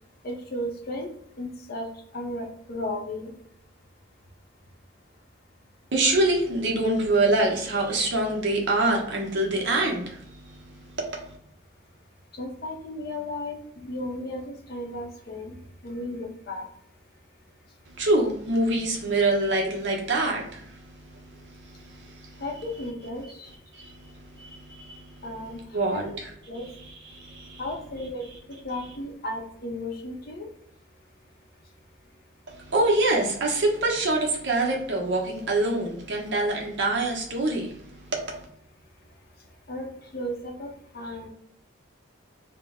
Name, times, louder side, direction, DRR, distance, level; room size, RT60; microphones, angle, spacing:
voice 1, 0.2-1.1 1.4-1.9 2.1-3.3 12.3-15.6 15.8-16.7 22.4-23.5 25.2-25.6 25.9-26.1 26.5-26.7 27.6-28.3 28.6-30.5 39.7-39.9 40.1-40.7 40.9-41.3, left 1 dB, 50° left, 0.7 m, -34 dB
voice 2, 5.9-11.4 18.0-22.4 23.7-25.2 25.7-26.0 26.8-27.6 32.5-38.4, right 2 dB, 60° right, 0.8 m, -26 dB
2.9 x 2.1 x 3.5 m
head